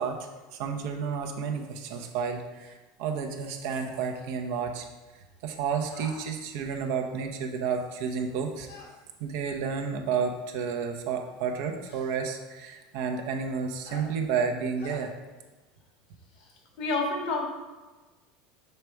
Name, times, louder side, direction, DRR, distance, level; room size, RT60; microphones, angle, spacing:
voice 1, 0.0-4.9 5.4-8.7 9.2-15.1, right 6 dB, 70° right, 4 dB, 0.8 m, -31 dB
sound 1, 5.9-6.2 8.6-8.9 10.2-10.3 11.9-12.1 13.8-14.1 14.8-15.0, left 3 dB, 85° left, 1.4 m, -46 dB
voice 2, 16.8-17.5, left 3 dB, 65° left, 1 dB, 1.5 m, -28 dB
6.6 x 3.3 x 4.7 m, 1.2 s
hypercardioid pair, 90°, 0 cm